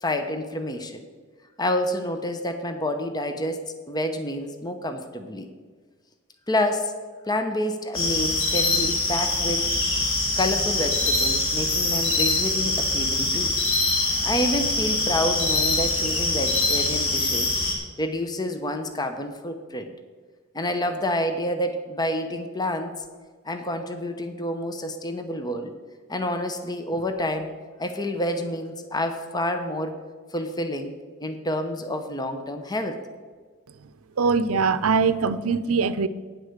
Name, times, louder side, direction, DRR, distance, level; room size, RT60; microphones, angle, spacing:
voice 1, 0.0-1.0 1.6-5.5 6.5-6.9 7.2-9.7 10.4-13.5 14.2-19.9 20.5-22.9 23.4-25.7 26.1-27.5 27.8-30.0 30.3-30.9 31.2-33.0, left 1 dB, 20° left, 7 dB, 0.8 m, -28 dB
sound 1, 7.9-17.7, left 2 dB, 70° left, 2.8 m, -24 dB
voice 2, 34.2-36.1, right 5 dB, 85° right, 14 dB, 0.6 m, -22 dB
9.4 x 8.1 x 6.6 m, 1.5 s
head